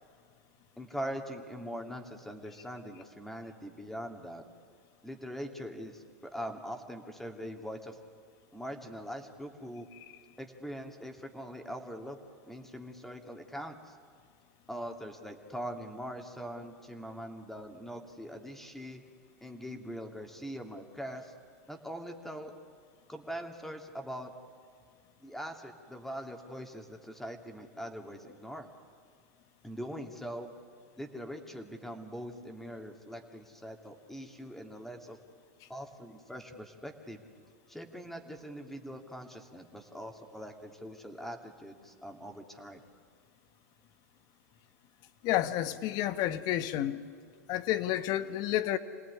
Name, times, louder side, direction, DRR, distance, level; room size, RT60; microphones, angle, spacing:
voice 1, 0.8-4.4 5.0-8.0 8.5-9.9 10.4-12.2 12.5-14.0 14.7-19.0 19.4-21.3 21.7-22.5 23.1-24.3 25.2-28.7 29.6-30.5 31.0-35.2 35.7-37.3 37.7-42.8, equal, 5° left, 5 dB, 2.5 m, -42 dB
voice 2, 45.2-47.0 47.5-48.8, left 13 dB, 50° left, 12 dB, 1.3 m, -30 dB
27.5 x 18.5 x 9.7 m, 2.1 s
hypercardioid pair, 110°, 9 cm